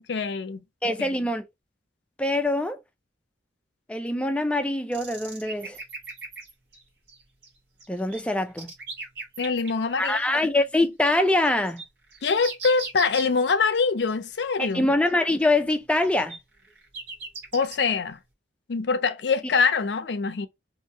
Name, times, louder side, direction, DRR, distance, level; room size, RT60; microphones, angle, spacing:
voice 1, 0.1-0.6 1.0-1.1 9.4-10.4 12.2-14.9 17.5-18.2 18.7-20.5, left 5 dB, 70° left, 0.5 m, -24 dB
voice 2, 0.8-1.4 2.2-2.8 3.9-5.8 7.9-8.7 10.0-11.8 14.6-16.4, left 2 dB, 5° left, 0.4 m, -24 dB
sound 1, 4.9-6.8 7.1-7.5 7.8-9.7 10.2-10.3 10.8-10.9 11.1-13.5 13.7-13.8 14.1-14.2 14.4-14.5 14.7-15.1 15.4-17.8, right 4 dB, 65° right, 1.2 m, -39 dB
2.8 x 2.7 x 2.6 m
head